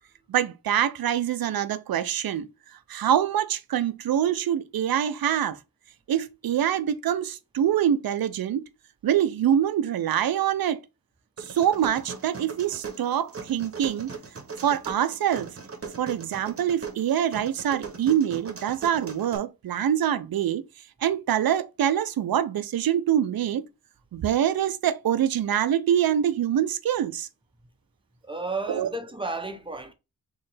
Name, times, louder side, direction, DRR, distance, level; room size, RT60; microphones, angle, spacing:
voice 1, 0.3-2.5 2.9-5.6 6.1-8.6 9.0-10.8 11.5-14.1 14.6-15.5 16.0-20.6 21.0-23.6 24.1-27.3 28.7-28.9, right 10 dB, 70° right, 0.5 m, -25 dB
sound 1, 11.4-19.4, right 5 dB, 40° right, 0.9 m, -39 dB
voice 2, 28.2-29.9, right 3 dB, 15° right, 0.6 m, -32 dB
4.3 x 3.2 x 3.2 m
wide cardioid pair, 120°, 37 cm